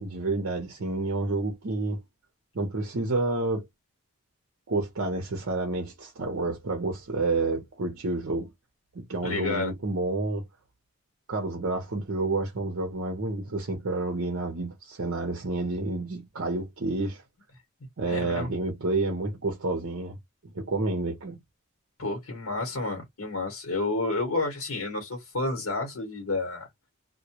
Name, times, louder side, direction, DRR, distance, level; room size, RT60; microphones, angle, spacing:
voice 1, 0.0-2.0 2.5-3.7 4.7-8.5 8.9-10.4 11.3-17.2 18.0-20.2 20.5-21.4, right 2 dB, 60° right, 0.7 m, -29 dB
voice 2, 9.2-9.7 18.1-18.5 22.0-26.7, left 2 dB, 80° left, 1.0 m, -30 dB
2.2 x 2.1 x 2.8 m
head